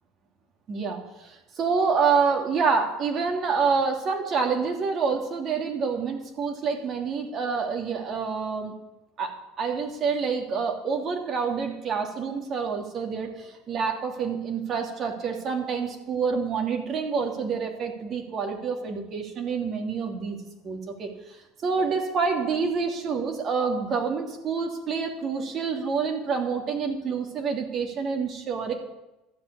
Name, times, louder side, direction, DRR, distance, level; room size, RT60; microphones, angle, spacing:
voice 1, 0.7-8.7 9.2-20.4 20.6-21.4 21.6-28.7, right 5 dB, 45° right, 3 dB, 2.9 m, -27 dB
12.5 x 8.4 x 8.5 m, 0.96 s
hypercardioid pair, 70°, 0 cm